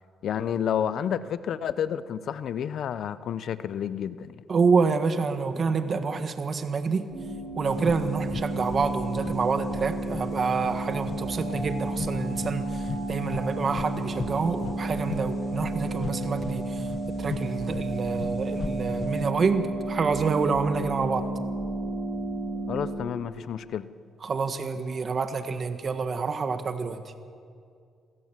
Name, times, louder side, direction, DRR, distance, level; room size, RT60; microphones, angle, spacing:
voice 1, 0.2-4.4 22.7-23.9, left 9 dB, 70° left, 14 dB, 0.9 m, -30 dB
voice 2, 4.5-7.1 7.6-16.9 17.2-21.3 24.2-27.0, right 5 dB, 45° right, 8 dB, 1.5 m, -27 dB
sound 1, 7.1-22.9, right 2 dB, 75° right, 7.8 m, -32 dB
sound 2, 7.7-19.3, left 5 dB, 45° left, 1.0 m, -39 dB
26.5 x 17.0 x 7.5 m, 2.3 s
cardioid pair, 90°, 0 cm